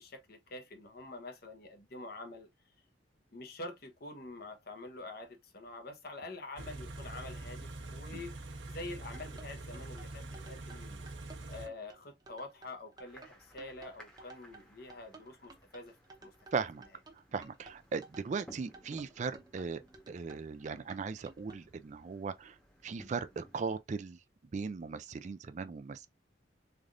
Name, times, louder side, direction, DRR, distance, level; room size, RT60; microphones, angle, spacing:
voice 1, 0.0-2.5 3.3-8.3 8.7-11.0 11.5-16.0 16.2-16.3, left 2 dB, 55° left, 0.9 m, -46 dB
Car / Idling, 6.6-11.7, right 2 dB, 75° right, 0.9 m, -44 dB
sound 1, 8.9-21.6, right 2 dB, 20° right, 0.8 m, -54 dB
sound 2, 13.0-23.8, equal, 5° left, 1.0 m, -60 dB
voice 2, 16.5-16.8 17.3-19.8 20.1-22.6 22.8-24.2 24.5-26.1, right 5 dB, 40° right, 0.3 m, -38 dB
3.8 x 3.3 x 2.5 m
head